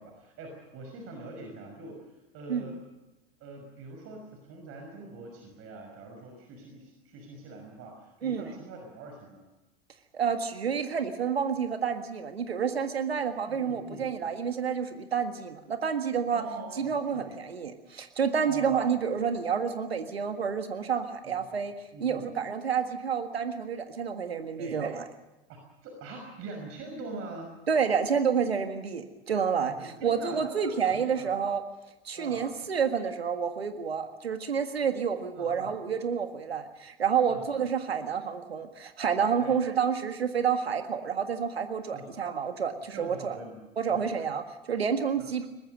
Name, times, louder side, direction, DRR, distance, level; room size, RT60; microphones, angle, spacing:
voice 1, 0.0-2.8 3.4-9.4 13.5-14.1 16.3-17.3 18.4-18.8 21.2-21.6 21.9-22.3 24.6-24.8 25.5-27.5 29.7-31.3 32.2-32.5 35.3-35.7 37.3-37.5 39.4-39.5 41.9-42.1 42.9-43.6 43.9-44.1 45.2-45.3, right 2 dB, 50° right, 3 dB, 5.9 m, -44 dB
voice 2, 10.1-16.4 16.8-21.7 22.0-25.0 27.7-31.6 32.1-43.4 43.8-45.5, right 7 dB, 85° right, 8 dB, 1.7 m, -29 dB
23.0 x 21.0 x 6.6 m, 1.0 s
hypercardioid pair, 80°, 30 cm